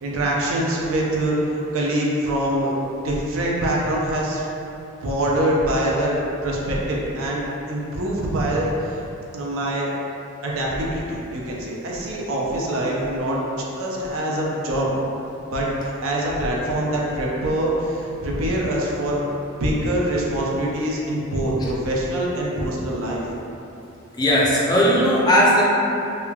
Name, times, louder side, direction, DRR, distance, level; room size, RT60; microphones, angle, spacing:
voice 1, 0.0-2.7 3.0-4.5 5.0-7.4 7.7-9.0 9.3-9.9 10.4-14.9 15.5-19.2 19.6-23.2, right 1 dB, 65° right, -4 dB, 0.4 m, -24 dB
voice 2, 24.1-25.6, equal, 20° left, -6 dB, 0.4 m, -17 dB
3.0 x 2.1 x 2.3 m, 2.8 s
head